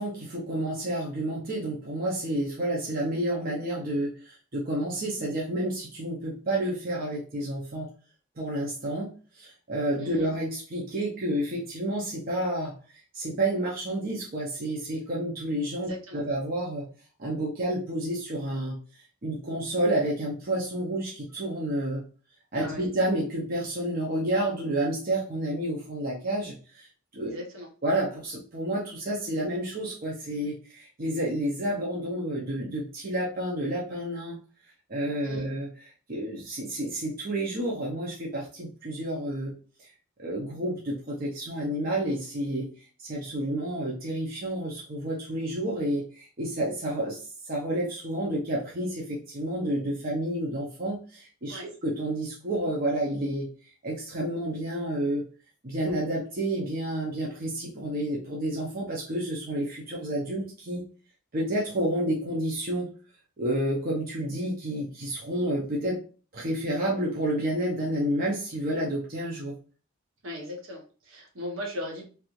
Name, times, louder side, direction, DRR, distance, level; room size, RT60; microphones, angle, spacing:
voice 1, 0.0-7.9 8.4-12.8 13.1-16.9 17.2-18.8 19.2-22.1 22.5-26.9 27.1-27.3 27.8-34.4 34.9-35.7 36.1-39.9 40.2-42.7 43.0-53.5 53.8-55.3 55.6-60.9 61.3-62.9 63.4-66.0 66.3-69.6, right 1 dB, 40° right, -4 dB, 0.7 m, -30 dB
voice 2, 10.0-10.3 15.9-16.2 22.5-22.9 27.2-27.7 35.2-35.5 51.5-51.7 70.2-72.1, left 1 dB, 65° right, 0 dB, 1.1 m, -38 dB
3.3 x 3.1 x 2.5 m, 0.37 s
head